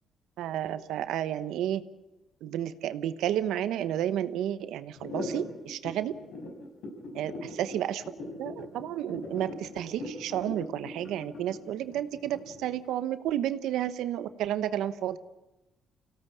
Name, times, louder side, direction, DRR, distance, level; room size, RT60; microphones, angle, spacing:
voice 1, 0.4-1.8 2.4-6.1 7.1-8.0 8.4-15.2, right 11 dB, 85° right, 13 dB, 1.0 m, -31 dB
sound 1, 5.0-12.8, left 2 dB, 75° left, 5.8 m, -40 dB
25.0 x 17.0 x 8.5 m, 1.0 s
cardioid pair, 90°, 0 cm